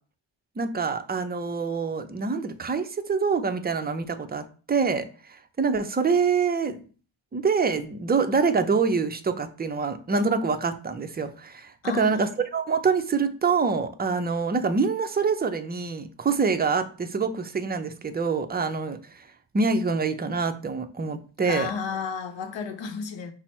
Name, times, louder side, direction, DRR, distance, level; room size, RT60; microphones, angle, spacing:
voice 1, 0.6-5.0 5.6-6.8 7.3-19.2 19.5-21.7, right 5 dB, 20° right, 0.4 m, -25 dB
voice 2, 11.8-12.3 21.4-23.3, left 5 dB, 75° left, 0.8 m, -32 dB
5.9 x 2.0 x 4.2 m
wide cardioid pair, 100°, 46 cm